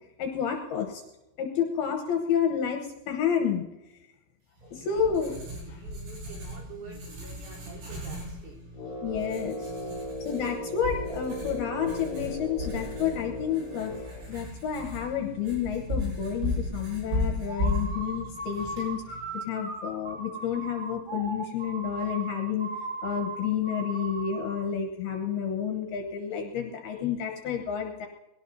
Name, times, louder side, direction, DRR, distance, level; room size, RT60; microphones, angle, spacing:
voice 1, 0.2-1.0 1.4-3.7 4.7-5.4 5.7-5.8 9.0-9.7 10.2-13.9 14.3-19.0 19.3-22.7 23.0-28.1, left 8 dB, 70° left, 3 dB, 2.6 m, -30 dB
Writing, 4.6-19.4, left 1 dB, 85° right, 8.3 m, -36 dB
voice 2, 5.5-8.7, right 4 dB, 60° right, -4 dB, 5.6 m, -47 dB
Brass instrument, 8.7-14.3, equal, 55° left, 1.1 m, -37 dB
sound 1, 17.5-24.7, right 3 dB, 30° right, 0.9 m, -37 dB
22.0 x 17.5 x 2.7 m, 0.98 s
omnidirectional pair, 5.4 m